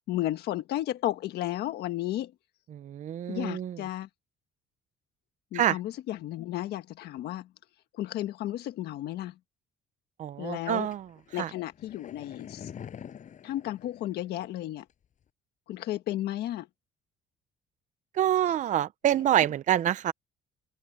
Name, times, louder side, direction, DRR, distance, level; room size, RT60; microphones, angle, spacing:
voice 1, 0.1-2.3 3.3-4.1 5.5-7.5 7.9-9.3 10.4-10.9 11.3-12.7 13.4-14.9 15.7-16.7, left 14 dB, 75° left, 1.5 m, -33 dB
voice 2, 2.7-3.8 5.5-5.8 10.2-11.1 11.4-11.5 18.1-20.1, right 11 dB, 45° right, 0.6 m, -26 dB
sound 1, 10.9-14.6 14.9-15.0, left 8 dB, 50° left, 5.9 m, -46 dB
cardioid pair, 110°, 17 cm